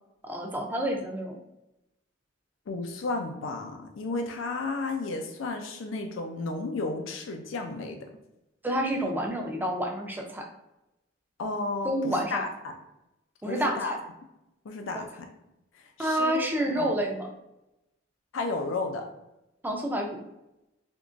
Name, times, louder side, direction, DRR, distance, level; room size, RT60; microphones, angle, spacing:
voice 1, 0.2-1.4 8.6-10.5 11.8-12.4 13.4-14.0 14.9-15.0 16.0-17.3 19.6-20.2, equal, 10° right, 1 dB, 0.5 m, -29 dB
voice 2, 2.7-8.1 11.4-12.7 13.5-13.9 14.6-15.3 15.8-16.5 16.8-17.0 18.3-19.1, left 3 dB, 80° left, 4 dB, 0.5 m, -33 dB
3.6 x 2.9 x 2.5 m, 0.90 s
head